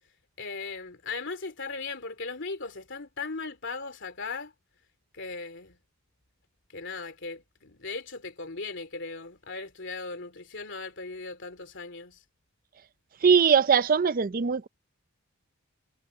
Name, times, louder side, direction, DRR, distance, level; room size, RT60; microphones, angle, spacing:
voice 1, 0.4-4.5 5.1-5.8 6.7-12.2, left 4 dB, 55° left, 3.0 m, -38 dB
voice 2, 13.2-14.7, right 6 dB, 40° right, 0.4 m, -21 dB
head